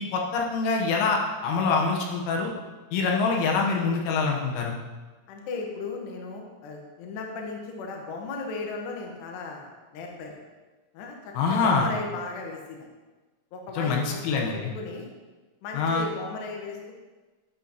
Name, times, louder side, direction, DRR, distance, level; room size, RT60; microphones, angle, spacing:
voice 1, 0.0-2.5 2.9-4.8 11.4-11.9 13.8-14.7 15.7-16.1, left 4 dB, 85° left, 0 dB, 3.5 m, -25 dB
voice 2, 5.3-10.4 10.9-12.8 13.5-15.1 15.6-16.9, left 3 dB, 70° left, 1 dB, 3.0 m, -36 dB
11.5 x 8.3 x 2.9 m, 1.2 s
omnidirectional pair, 5.5 m